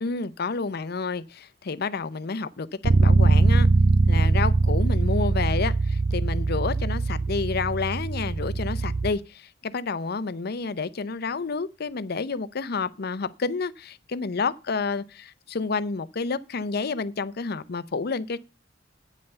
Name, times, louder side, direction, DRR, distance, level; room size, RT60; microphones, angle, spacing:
voice 1, 0.0-3.7 4.1-18.4, left 4 dB, 55° left, 0.6 m, -29 dB
Bass guitar, 2.8-9.1, right 3 dB, 70° right, 0.6 m, -21 dB
9.3 x 5.5 x 6.8 m
head